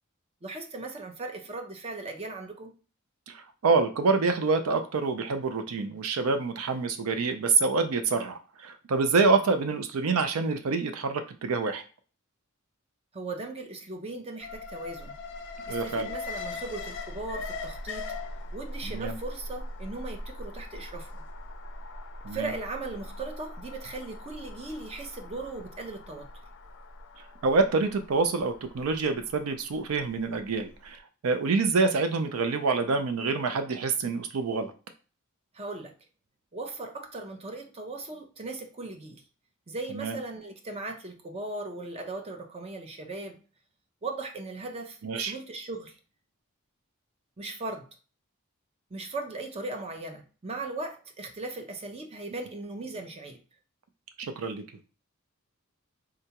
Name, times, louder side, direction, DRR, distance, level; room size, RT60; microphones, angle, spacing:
voice 1, 0.4-2.7 13.1-15.2 15.7-18.1 18.5-21.2 22.3-26.3 35.5-35.9 36.5-39.2 39.7-43.4 44.0-45.9 47.4-47.9 48.9-53.4, right 2 dB, 30° right, 0.5 m, -38 dB
voice 2, 3.3-11.8 15.7-16.1 18.8-19.2 22.2-22.5 27.4-34.7 39.9-40.2 45.0-45.3 54.2-54.6, right 4 dB, 90° right, 0.4 m, -27 dB
Alarm, 14.4-30.5 30.8-30.9, left 2 dB, 55° left, 0.4 m, -40 dB
3.8 x 2.2 x 2.8 m
head